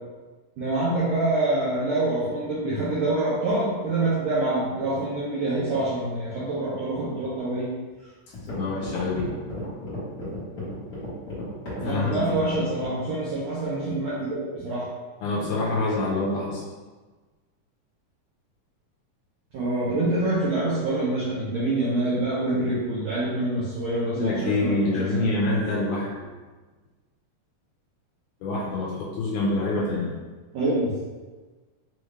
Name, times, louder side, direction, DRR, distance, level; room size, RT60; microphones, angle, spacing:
voice 1, 0.6-7.7 11.8-14.9 19.5-25.3 30.5-30.9, right 2 dB, 75° right, -10 dB, 1.6 m, -26 dB
sound 1, 7.9-8.0 8.3-13.0, left 1 dB, 65° left, 0.8 m, -34 dB
voice 2, 8.5-9.4 11.8-12.2 15.2-16.6 24.2-26.3 28.4-30.1, left 2 dB, 80° left, -5 dB, 1.9 m, -26 dB
5.4 x 2.5 x 3.2 m, 1.3 s
omnidirectional pair, 4.0 m